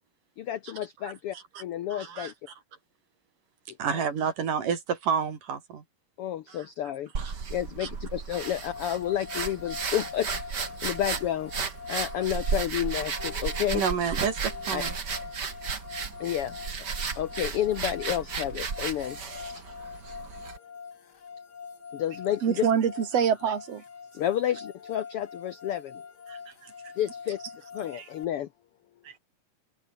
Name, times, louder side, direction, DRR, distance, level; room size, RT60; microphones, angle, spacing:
voice 1, 0.4-1.3 1.6-2.3 3.9-4.0 6.2-7.1 7.5-10.4 10.8-11.5 11.9-13.8 14.7-14.8 16.2-16.5 17.2-19.2 19.5-19.6 21.9-22.6 24.2-25.9 27.0-27.4 27.7-28.5, left 11 dB, 90° left, 1.2 m, -30 dB
voice 2, 1.9-2.3 3.8-5.8 6.5-6.7 7.2-7.3 7.8-7.9 13.7-15.0, right 7 dB, 75° right, 4.8 m, -30 dB
sound 1, 7.1-20.6, right 5 dB, 35° right, 2.5 m, -34 dB
sound 2, 8.4-28.2, left 6 dB, 35° left, 2.0 m, -44 dB
voice 3, 22.4-23.8 26.3-26.7 27.9-28.1 29.0-29.1, right 7 dB, 50° right, 3.3 m, -26 dB
open air
omnidirectional pair, 3.8 m